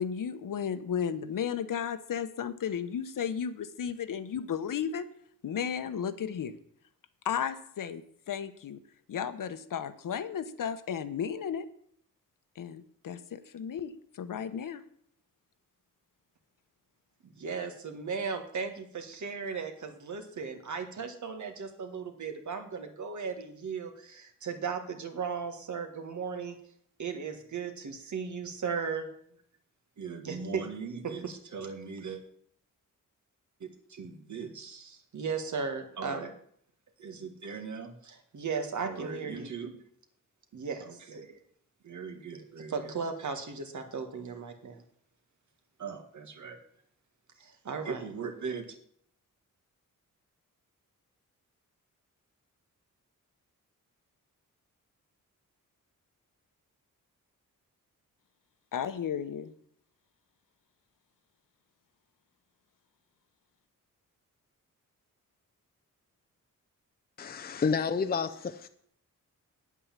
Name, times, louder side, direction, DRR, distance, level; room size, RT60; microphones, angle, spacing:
voice 1, 0.0-5.1 5.4-6.5 7.2-8.8 9.1-11.7 12.6-14.8 58.7-59.5, left 8 dB, 75° left, 1.0 m, -34 dB
voice 2, 17.3-26.6 27.0-29.1 30.0-32.2 33.6-36.3 37.0-39.8 40.5-41.4 41.8-44.8 45.8-46.6 47.4-48.7, right 5 dB, 60° right, 1.8 m, -37 dB
voice 3, 67.2-68.7, left 5 dB, 30° left, 0.6 m, -30 dB
9.7 x 8.4 x 7.4 m
wide cardioid pair, 120°, 33 cm